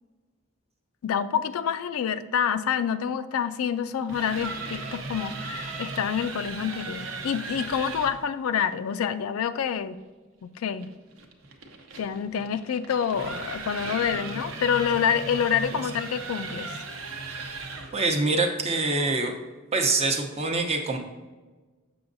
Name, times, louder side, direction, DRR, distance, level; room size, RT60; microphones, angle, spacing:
voice 1, 1.0-10.0 10.4-10.9 12.0-16.7, left 7 dB, 80° left, 12 dB, 0.4 m, -27 dB
sound 1, 3.9-8.2 10.8-18.0, right 3 dB, 65° right, 0.8 m, -37 dB
voice 2, 17.3-17.6 17.9-19.3 19.7-21.0, right 3 dB, 30° right, 4 dB, 0.7 m, -25 dB
7.0 x 6.2 x 2.6 m, 1.3 s
head